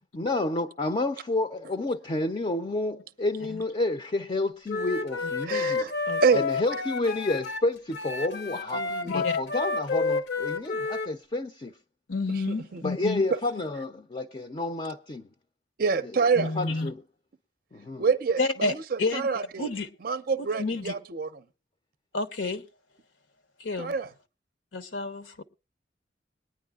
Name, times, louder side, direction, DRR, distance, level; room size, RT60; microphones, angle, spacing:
voice 1, 0.1-5.9 6.3-8.8 9.1-11.7 12.8-15.3 16.6-17.0 17.7-18.0, left 2 dB, 30° left, 0.5 m, -30 dB
Wind instrument woodwind instrument, 4.7-7.6 7.9-11.1, left 4 dB, 65° left, 0.8 m, -30 dB
voice 2, 5.5-5.9 6.2-6.4 8.7-9.1 12.5-12.8 15.8-16.5 18.0-19.7 20.0-21.3 23.8-24.1, right 5 dB, 50° right, 0.5 m, -27 dB
voice 3, 9.0-9.4 12.1-13.2 16.4-16.9 18.4-18.7 19.0-19.3 19.6-19.9 20.4-20.9 22.1-22.6 23.6-23.9 24.7-25.4, left 3 dB, 85° left, 1.0 m, -30 dB
22.0 x 9.9 x 2.3 m
head